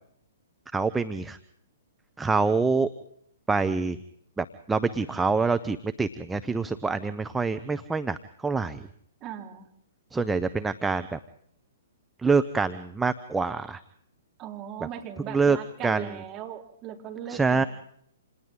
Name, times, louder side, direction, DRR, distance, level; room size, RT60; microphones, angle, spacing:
voice 1, 0.7-1.4 2.2-2.9 3.5-4.0 4.4-8.9 10.1-11.2 12.2-13.8 15.3-16.2 17.3-17.6, right 4 dB, 5° right, 8 dB, 0.8 m, -26 dB
voice 2, 9.2-9.7 14.4-17.7, right 10 dB, 25° right, 0 dB, 4.5 m, -38 dB
29.5 x 27.5 x 3.9 m, 0.68 s
figure-of-eight pair, 115°, 0 cm